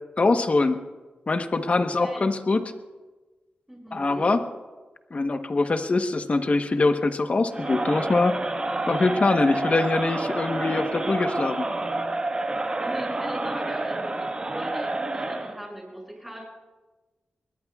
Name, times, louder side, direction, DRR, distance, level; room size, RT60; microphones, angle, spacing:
voice 1, 0.2-0.8 1.3-2.6 3.9-4.4 5.1-8.4 8.9-11.7, left 3 dB, 45° left, 7 dB, 1.1 m, -23 dB
voice 2, 3.7-4.3 12.8-16.4, equal, 5° right, -2 dB, 6.6 m, -39 dB
Crowd, 7.5-15.6, right 2 dB, 30° right, 1.4 m, -29 dB
23.5 x 20.0 x 2.4 m, 1.2 s
wide cardioid pair, 90°, 3 cm